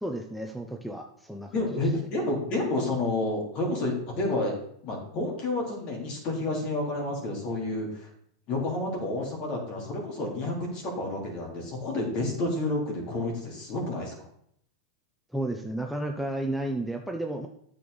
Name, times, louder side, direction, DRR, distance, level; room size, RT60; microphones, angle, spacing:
voice 1, 0.0-1.6 15.3-17.5, right 1 dB, ahead, 3 dB, 0.7 m, -32 dB
voice 2, 1.5-4.5 4.8-8.1 8.5-14.1, left 2 dB, 40° left, -1 dB, 3.5 m, -30 dB
9.3 x 6.8 x 4.0 m, 0.69 s
supercardioid pair, 135°, 2 cm